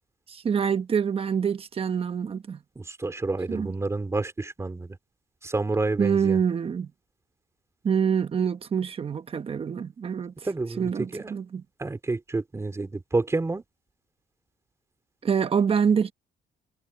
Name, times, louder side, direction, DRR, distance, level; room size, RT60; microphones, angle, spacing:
voice 1, 0.3-2.6 3.5-3.7 6.0-6.9 7.8-10.3 10.8-11.6 15.2-16.1, right 7 dB, 35° right, 1.3 m, -25 dB
voice 2, 2.8-5.0 5.4-6.4 10.4-11.3 11.8-13.6, right 3 dB, 15° right, 4.1 m, -29 dB
cardioid pair, 110°, 17 cm